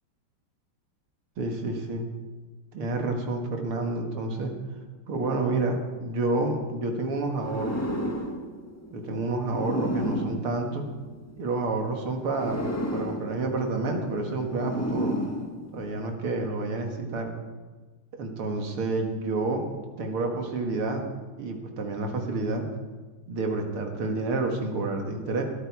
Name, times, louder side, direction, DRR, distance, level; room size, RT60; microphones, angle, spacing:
voice 1, 1.4-2.1 2.7-4.5 5.1-8.0 8.9-10.9 11.4-12.6 12.9-15.2 15.7-17.3 18.1-21.0 21.4-22.7 23.3-25.4, right 2 dB, 80° right, 3 dB, 2.7 m, -29 dB
sound 1, 7.3-11.5 12.2-16.1, equal, 10° left, 1.1 m, -33 dB
21.0 x 13.0 x 4.8 m, 1.3 s
omnidirectional pair, 2.4 m